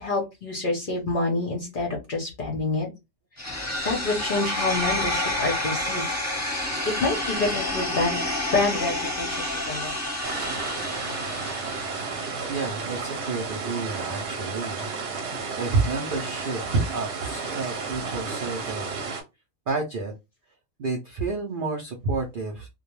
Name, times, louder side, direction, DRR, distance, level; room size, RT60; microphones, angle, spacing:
voice 1, 0.0-2.9 3.4-6.2 6.8-8.2 8.5-9.9, left 3 dB, 50° left, 0 dB, 0.6 m, -27 dB
sound 1, 3.4-13.4, left 1 dB, 15° left, 0.7 m, -29 dB
sound 2, 10.2-19.2, right 4 dB, 60° right, 0.9 m, -32 dB
voice 2, 12.5-14.9 15.6-19.0 19.7-20.1 20.8-22.7, right 3 dB, 75° right, 1 dB, 0.4 m, -29 dB
2.2 x 2.2 x 2.9 m, 0.23 s
omnidirectional pair, 1.5 m